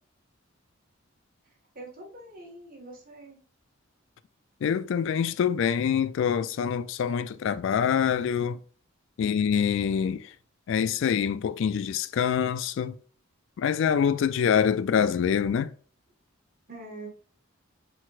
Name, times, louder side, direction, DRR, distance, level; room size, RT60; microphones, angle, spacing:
voice 1, 1.7-3.4 16.7-17.1, right 2 dB, 45° right, 1.6 m, -44 dB
voice 2, 4.6-8.6 9.2-10.3 10.7-13.0 13.6-15.7, left 7 dB, 65° left, 0.3 m, -25 dB
4.2 x 4.1 x 2.5 m
head